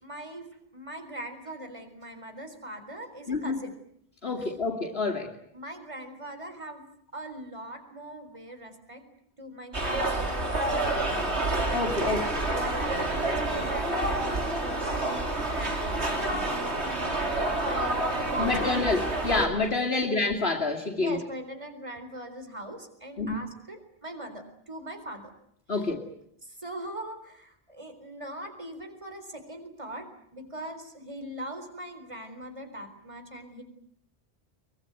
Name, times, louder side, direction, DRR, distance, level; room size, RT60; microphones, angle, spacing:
voice 1, 0.0-3.8 4.4-4.5 5.5-6.8 7.1-9.0 9.4-11.4 12.0-12.2 12.5-16.7 16.9-18.0 18.2-18.9 19.9-20.1 20.9-25.3 25.7-25.9 26.4-33.6, right 1 dB, 30° right, 7 dB, 4.2 m, -41 dB
voice 2, 3.3-3.6 4.2-5.3 11.7-12.2 18.4-21.2 23.2-23.5 25.7-26.1, left 3 dB, 65° left, 3 dB, 2.7 m, -27 dB
sound 1, 9.7-19.5, right 2 dB, 85° right, 4.1 m, -28 dB
24.0 x 22.5 x 9.2 m, 0.70 s
omnidirectional pair, 1.1 m